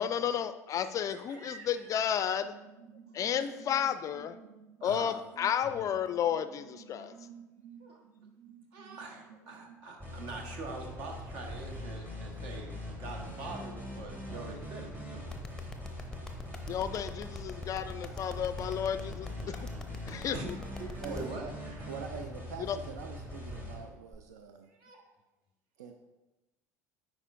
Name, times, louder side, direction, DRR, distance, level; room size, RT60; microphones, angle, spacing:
voice 1, 0.0-2.5 3.1-4.4 4.8-7.1 16.7-19.6 20.1-20.4 22.7-22.8, left 9 dB, 35° left, 12 dB, 0.3 m, -32 dB
voice 2, 0.8-2.0 3.4-3.5 4.8-5.1 6.9-7.2 7.8-8.0 8.7-12.7 13.0-15.3 18.0-18.3 19.4-19.5 20.2-21.9 24.7-25.0, right 3 dB, 60° right, 2 dB, 1.2 m, -45 dB
sound 1, 2.4-9.8, right 7 dB, 40° right, 0.7 m, -54 dB
sound 2, 10.0-24.1, left 1 dB, 25° right, 2.1 m, -42 dB
sound 3, 15.3-21.2, left 3 dB, 5° left, 0.7 m, -43 dB
voice 3, 21.0-21.4 21.9-24.7 25.8-25.9, right 6 dB, 75° right, 6 dB, 0.4 m, -44 dB
9.7 x 4.4 x 2.5 m, 1.0 s
figure-of-eight pair, 70°, 9 cm